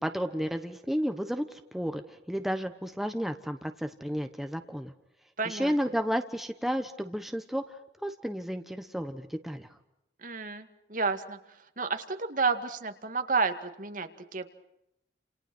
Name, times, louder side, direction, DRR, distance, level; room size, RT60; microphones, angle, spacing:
voice 1, 0.0-4.9 5.4-7.7 8.0-9.7, equal, ahead, 7 dB, 1.1 m, -32 dB
voice 2, 5.4-5.7 10.2-14.5, right 4 dB, 45° right, 8 dB, 2.1 m, -31 dB
29.5 x 28.5 x 6.2 m, 0.83 s
head